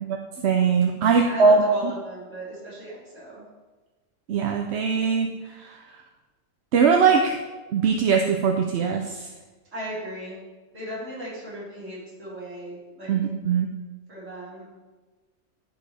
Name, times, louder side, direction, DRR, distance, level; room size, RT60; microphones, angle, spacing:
voice 1, 0.0-1.6 4.3-5.3 5.6-5.8 6.7-7.4 7.7-9.3 13.1-13.7, right 5 dB, 65° right, 3 dB, 0.9 m, -21 dB
voice 2, 1.0-3.4 9.7-10.4 10.7-13.2 14.1-14.7, right 1 dB, 80° right, -9 dB, 3.6 m, -36 dB
13.5 x 4.8 x 3.3 m, 1.2 s
omnidirectional pair, 1.3 m